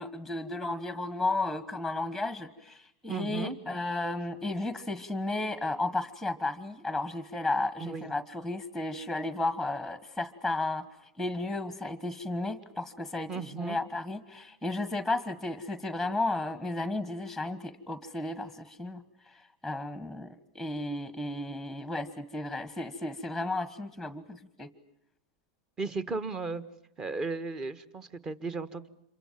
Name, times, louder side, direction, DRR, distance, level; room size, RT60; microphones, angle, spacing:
voice 1, 0.0-24.7, left 2 dB, 5° right, 13 dB, 1.5 m, -33 dB
voice 2, 3.1-3.6 7.8-8.1 13.3-13.8 25.8-26.6 27.0-28.9, right 4 dB, 25° right, 15 dB, 1.6 m, -35 dB
27.5 x 24.0 x 7.5 m, 0.80 s
supercardioid pair, 125°, 3 cm